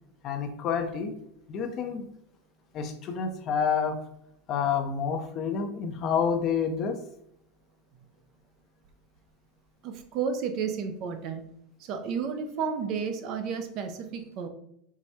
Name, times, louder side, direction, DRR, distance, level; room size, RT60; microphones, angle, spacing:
voice 1, 0.2-1.1 1.5-2.1 2.7-4.0 4.5-7.0, left 6 dB, 40° left, 6 dB, 0.7 m, -28 dB
voice 2, 9.8-11.5 11.8-14.5, right 6 dB, 50° right, 7 dB, 0.7 m, -32 dB
4.7 x 2.2 x 4.2 m, 0.74 s
supercardioid pair, 125°, 0 cm